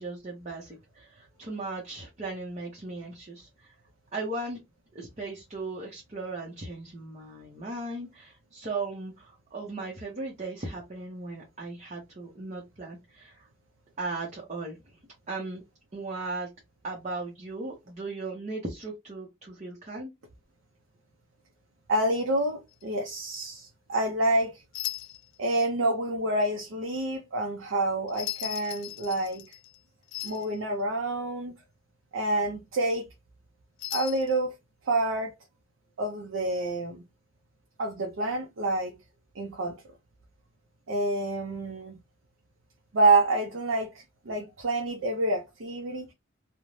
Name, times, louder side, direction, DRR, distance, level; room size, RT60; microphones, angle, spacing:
voice 1, 0.0-3.7 4.1-4.6 4.9-13.5 14.0-14.8 15.3-15.6 15.9-16.5 16.8-20.1, right 3 dB, 35° right, 0.7 m, -37 dB
voice 2, 21.9-24.6 25.4-29.6 30.2-31.5 32.1-33.1 33.9-34.5 34.9-35.3 36.0-37.0 37.8-39.0 39.4-39.8 40.9-42.0 42.9-46.1, right 2 dB, 85° right, 0.5 m, -28 dB
sound 1, 22.7-23.0 24.7-25.4 28.1-29.8 30.1-30.6 33.8-34.4, left 14 dB, 85° left, 0.4 m, -37 dB
2.6 x 2.1 x 3.0 m
head